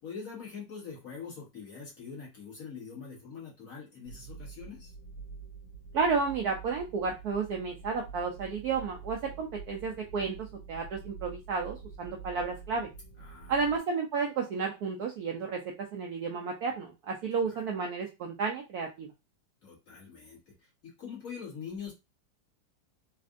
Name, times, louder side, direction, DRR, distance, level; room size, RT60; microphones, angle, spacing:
voice 1, 0.0-4.9 13.2-13.6 17.5-17.6 19.6-21.9, left 6 dB, 45° left, -5 dB, 1.8 m, -44 dB
sound 1, 4.1-13.8, right 5 dB, 70° left, 2.0 m, -47 dB
voice 2, 5.9-12.9 13.5-15.6 15.9-19.1, right 5 dB, 75° right, 2 dB, 0.9 m, -32 dB
4.1 x 2.5 x 2.5 m, 0.24 s
omnidirectional pair, 2.2 m